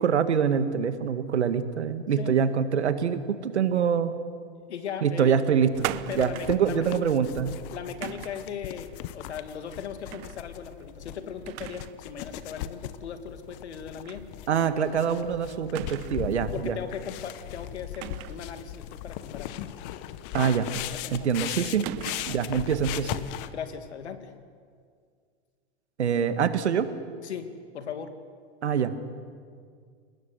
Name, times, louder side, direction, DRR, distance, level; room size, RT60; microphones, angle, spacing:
voice 1, 0.0-4.2 5.0-5.9 6.2-7.5 14.5-16.8 20.3-20.7 21.1-21.9 22.3-23.2 26.0-26.9 28.6-29.0, right 7 dB, 90° right, 10 dB, 1.9 m, -25 dB
voice 2, 4.7-5.4 6.1-6.9 7.7-14.3 16.5-19.6 20.3-20.5 20.9-21.6 23.2-23.3 23.5-24.3 27.2-28.2, left 7 dB, 85° left, 8 dB, 2.6 m, -38 dB
sound 1, 5.7-23.5, left 13 dB, 55° left, 1.4 m, -38 dB
sound 2, 5.8-6.7 8.0-8.5 10.1-10.4 10.8-10.9 11.5-12.0 12.3-12.4 14.0-14.3 14.6-14.7 15.7-16.4 17.9-18.5 20.3-20.9 21.8-22.5, right 18 dB, 45° right, 0.9 m, -38 dB
29.0 x 19.5 x 8.2 m, 2.1 s
hypercardioid pair, 115°, 33 cm